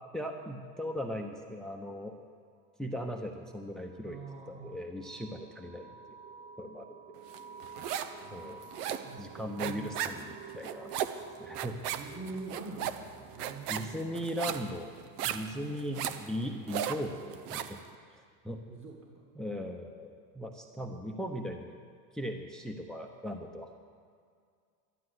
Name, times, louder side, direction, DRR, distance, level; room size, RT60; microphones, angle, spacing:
voice 1, 0.1-2.1 2.8-4.2 4.5-6.2 6.6-7.2 8.3-8.6 9.2-12.0 13.7-14.9 15.2-17.8 18.1-18.6 19.4-21.8 22.1-23.7, equal, ahead, 4 dB, 0.8 m, -38 dB
sound 1, 3.3-17.4, right 5 dB, 55° right, 2.4 m, -52 dB
voice 2, 4.0-4.8 5.9-6.0 8.2-9.9 11.9-14.0 15.6-16.3 18.7-19.2, right 3 dB, 25° right, 0 dB, 1.8 m, -46 dB
sound 2, 7.3-8.2 8.5-17.8, right 10 dB, 80° right, 0.9 m, -36 dB
12.0 x 12.0 x 7.9 m, 2.2 s
supercardioid pair, 115°, 46 cm